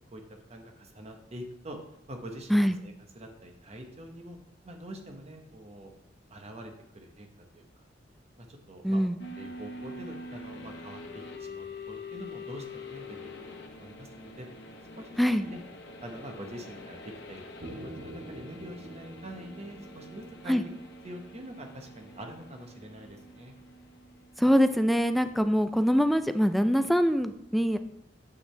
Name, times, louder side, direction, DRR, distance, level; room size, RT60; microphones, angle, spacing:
voice 1, 0.1-1.8 2.1-4.4 4.6-5.9 6.3-7.8 8.4-9.0 9.3-14.5 14.9-15.6 16.0-17.4 17.7-20.6 21.0-23.6, equal, 35° right, 4 dB, 1.1 m, -45 dB
voice 2, 8.8-9.2 15.2-15.4 20.5-20.6 24.4-27.8, equal, ahead, 9 dB, 0.3 m, -24 dB
sound 1, 9.2-24.9, left 2 dB, 65° left, 1.0 m, -45 dB
sound 2, 17.6-21.5, equal, 80° right, 2.8 m, -46 dB
8.1 x 6.0 x 3.3 m, 0.76 s
head